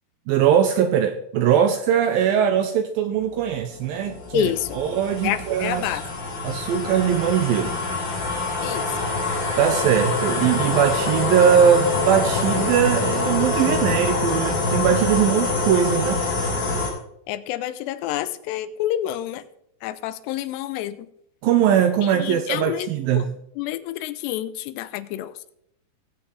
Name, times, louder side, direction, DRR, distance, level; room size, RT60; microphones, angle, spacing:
voice 1, 0.3-5.8 6.4-7.7 9.6-16.2 21.4-23.3, right 9 dB, 80° right, 8 dB, 2.2 m, -20 dB
sound 1, 3.4-16.9, left 3 dB, 30° left, 4.3 m, -25 dB
voice 2, 4.3-4.8 5.2-6.0 8.6-9.1 17.3-19.5 19.8-21.1 22.0-23.3 23.6-25.5, left 13 dB, 85° left, 13 dB, 2.8 m, -28 dB
18.5 x 8.5 x 3.3 m, 0.74 s
omnidirectional pair, 4.8 m